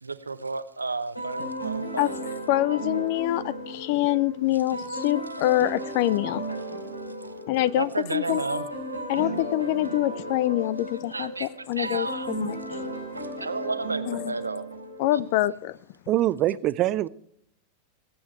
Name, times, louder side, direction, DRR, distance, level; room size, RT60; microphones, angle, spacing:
voice 1, 0.0-2.1 7.8-8.6 11.1-11.5 11.8-12.3 13.2-14.6 15.1-15.2, right 3 dB, 80° right, 0.9 m, -32 dB
sound 1, 1.2-15.4, right 1 dB, 85° left, 3.5 m, -35 dB
voice 2, 2.5-6.4 7.5-8.4 9.1-12.8 14.1-14.4 15.0-15.8, left 15 dB, 50° left, 0.5 m, -25 dB
voice 3, 16.1-17.1, right 14 dB, 35° right, 0.5 m, -23 dB
21.0 x 8.8 x 4.5 m
figure-of-eight pair, 90°, 0 cm